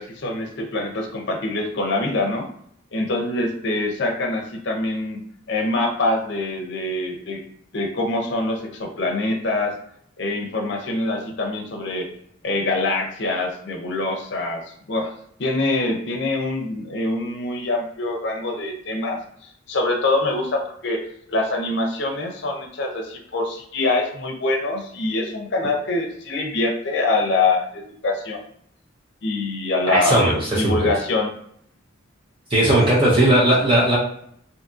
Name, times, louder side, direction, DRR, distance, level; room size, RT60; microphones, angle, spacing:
voice 1, 0.0-2.5 2.9-5.2 5.5-7.4 7.7-9.7 10.2-12.1 12.4-15.1 15.4-21.0 21.3-28.4 29.2-31.3, left 2 dB, 60° left, 2 dB, 0.6 m, -24 dB
voice 2, 29.9-30.9 32.5-34.0, right 1 dB, 25° right, -6 dB, 0.5 m, -17 dB
2.7 x 2.6 x 2.4 m, 0.66 s
head